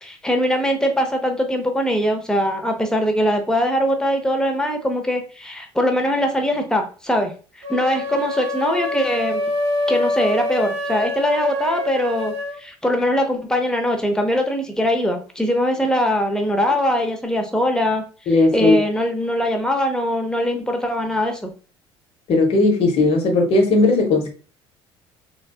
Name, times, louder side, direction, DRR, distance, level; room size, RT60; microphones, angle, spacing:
voice 1, 0.0-7.3 7.7-9.4 9.9-21.5, equal, 5° left, 0.7 m, -21 dB
sound 1, 7.6-12.6, left 2 dB, 75° right, 0.6 m, -25 dB
voice 2, 18.3-18.8 22.3-24.3, left 2 dB, 45° left, 0.9 m, -16 dB
3.4 x 2.2 x 2.3 m
figure-of-eight pair, 55°, 14 cm